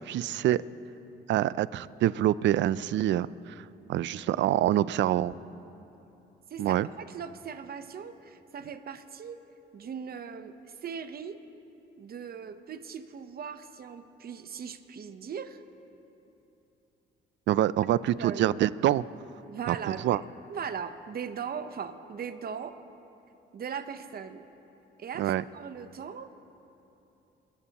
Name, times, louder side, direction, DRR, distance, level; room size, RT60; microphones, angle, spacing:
voice 1, 0.1-0.6 1.3-5.3 6.6-6.9 17.5-19.0 19.7-20.2 25.2-25.4, right 12 dB, 65° right, 18 dB, 0.4 m, -26 dB
voice 2, 6.5-9.4 9.7-11.4 12.0-15.6 18.2-18.5 19.5-20.2 20.5-22.7 23.5-24.4 25.0-26.3, right 7 dB, 50° right, 10 dB, 0.9 m, -39 dB
27.5 x 14.0 x 3.0 m, 2.9 s
cardioid pair, 90°, 20 cm